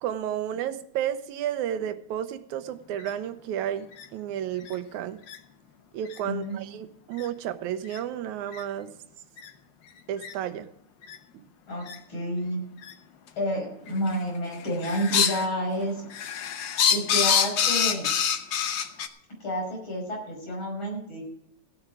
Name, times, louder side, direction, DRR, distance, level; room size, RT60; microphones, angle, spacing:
voice 1, 0.0-5.2 5.9-8.9 10.1-10.7 11.3-11.4, right 10 dB, 80° right, 11 dB, 2.2 m, -32 dB
sound 1, 3.0-3.1 3.9-4.1 4.7-4.8 5.3-5.4 6.1-6.2 7.2-7.3 7.9-8.0 8.5-8.6 9.4-9.5 10.2-10.3 11.0-11.2 11.9-12.0 12.8-12.9 13.9-14.2 14.5-15.5 15.8-19.1, left 8 dB, 80° left, 1.0 m, -26 dB
voice 2, 6.2-6.6 11.7-12.6 13.4-16.0 16.9-18.1 19.4-21.2, equal, 40° left, -1 dB, 6.3 m, -30 dB
16.0 x 9.4 x 5.0 m, 0.72 s
omnidirectional pair, 3.4 m